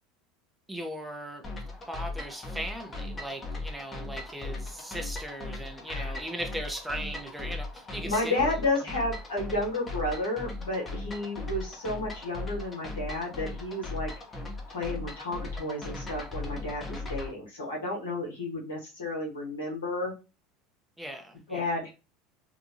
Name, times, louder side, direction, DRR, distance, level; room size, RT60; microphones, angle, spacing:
voice 1, 0.7-1.4 1.9-8.5 21.0-21.6, right 1 dB, 5° right, 0.7 m, -38 dB
sound 1, 1.4-17.3, left 2 dB, 25° left, 0.8 m, -38 dB
voice 2, 5.9-6.2 8.0-14.1 14.7-20.1 21.5-21.9, left 2 dB, 90° left, 1.3 m, -32 dB
2.9 x 2.2 x 2.6 m
hypercardioid pair, 85°, 0 cm